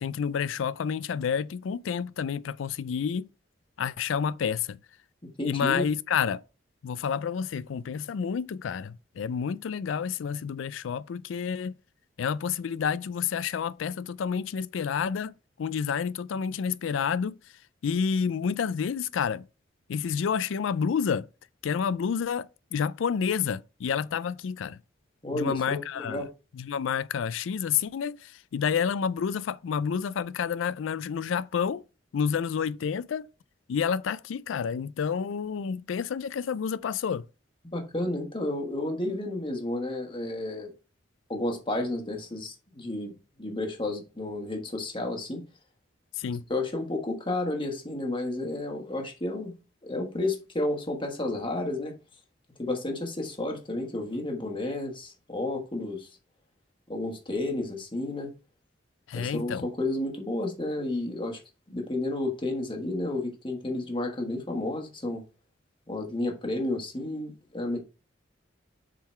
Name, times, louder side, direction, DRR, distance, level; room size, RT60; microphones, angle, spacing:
voice 1, 0.0-3.3 3.8-4.8 5.4-6.4 6.8-11.7 12.2-15.3 15.6-17.4 17.8-19.5 19.9-21.3 21.6-24.8 25.3-26.2 26.5-31.8 32.1-33.3 33.7-37.3 46.2-46.4 59.1-59.7, left 7 dB, 85° left, 0.4 m, -29 dB
voice 2, 5.4-5.9 25.2-26.3 37.6-40.7 41.3-45.4 46.5-49.5 49.8-51.9 52.6-56.1 56.9-58.3 59.1-61.4 61.7-65.2 65.9-67.8, left 2 dB, 25° left, 1.4 m, -31 dB
7.2 x 3.9 x 4.4 m
head